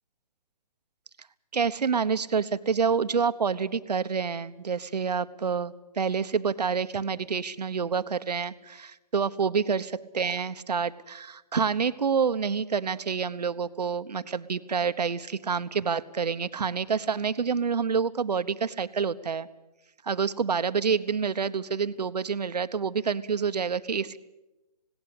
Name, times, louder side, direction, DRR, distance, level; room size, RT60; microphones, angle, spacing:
voice 1, 1.5-19.5 20.0-24.2, right 6 dB, 80° right, 12 dB, 1.1 m, -28 dB
19.5 x 17.5 x 8.3 m, 0.97 s
hypercardioid pair, 155°, 21 cm